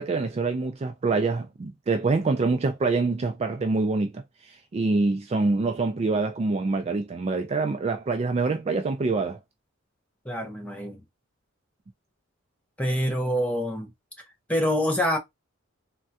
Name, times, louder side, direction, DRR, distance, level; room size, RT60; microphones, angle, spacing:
voice 1, 0.0-9.4, right 3 dB, 30° right, 0.3 m, -25 dB
voice 2, 10.2-11.0 12.8-13.9 14.5-15.2, equal, 5° left, 0.7 m, -26 dB
3.5 x 2.2 x 2.7 m
head